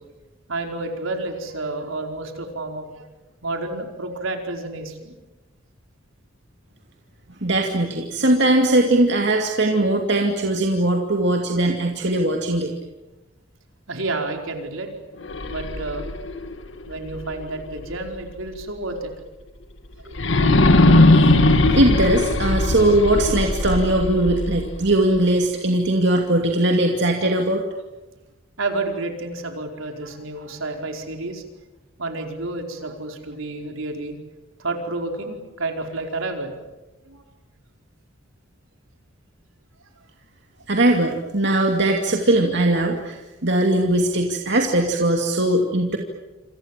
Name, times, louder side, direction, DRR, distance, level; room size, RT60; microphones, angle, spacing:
voice 1, 0.5-3.1 3.4-5.1 13.9-14.9 15.5-16.1 16.9-19.1 20.0-20.2 28.6-31.4 32.0-34.2 34.6-36.5 37.0-37.2, right 2 dB, 75° right, 3 dB, 4.9 m, -30 dB
voice 2, 7.4-12.7 21.2-27.6 40.7-46.0, right 1 dB, 55° right, 2 dB, 2.5 m, -20 dB
sound 1, 15.2-18.2 18.6-18.7 20.1-25.2, left 2 dB, 65° left, 1.9 m, -19 dB
28.0 x 27.5 x 7.5 m, 1.1 s
head